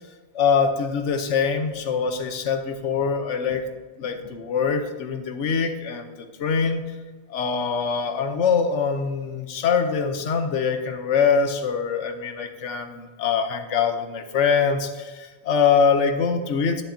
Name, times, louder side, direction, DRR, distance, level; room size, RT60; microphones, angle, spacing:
voice 1, 0.3-3.7 4.0-6.8 7.3-16.8, left 6 dB, 85° left, 8 dB, 1.1 m, -23 dB
11.5 x 7.1 x 2.7 m, 1.4 s
omnidirectional pair, 1.2 m